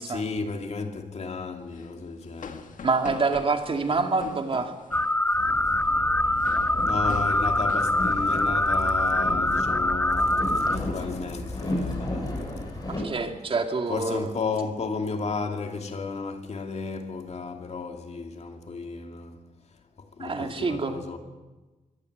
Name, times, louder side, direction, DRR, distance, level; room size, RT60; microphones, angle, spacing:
voice 1, 0.0-2.7 6.9-12.2 13.9-19.4 20.2-21.2, left 4 dB, 50° left, 2.6 m, -33 dB
sound 1, 1.6-9.7 10.0-10.2 10.6-10.9 11.4-12.5, left 6 dB, 65° left, 1.8 m, -44 dB
voice 2, 2.8-4.7 6.8-6.9 12.9-14.2 20.2-21.0, right 4 dB, 40° right, 2.3 m, -26 dB
sound 2, 4.9-10.8, left 2 dB, 10° left, 0.7 m, -24 dB
Boat Water vehicle, 5.3-13.0, left 1 dB, 30° left, 7.4 m, -33 dB
24.0 x 18.0 x 8.0 m
wide cardioid pair, 135°, 14 cm